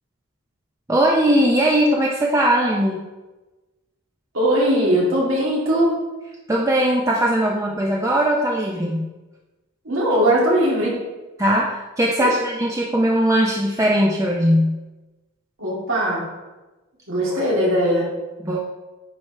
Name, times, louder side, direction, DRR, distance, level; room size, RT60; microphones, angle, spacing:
voice 1, 0.9-3.0 6.5-9.1 11.4-14.8 18.4-18.6, right 1 dB, 15° right, -2 dB, 0.5 m, -19 dB
voice 2, 4.3-5.9 9.8-10.9 15.6-16.2 17.1-18.1, equal, 90° right, -5 dB, 2.5 m, -19 dB
10.0 x 4.7 x 3.3 m, 1.1 s
head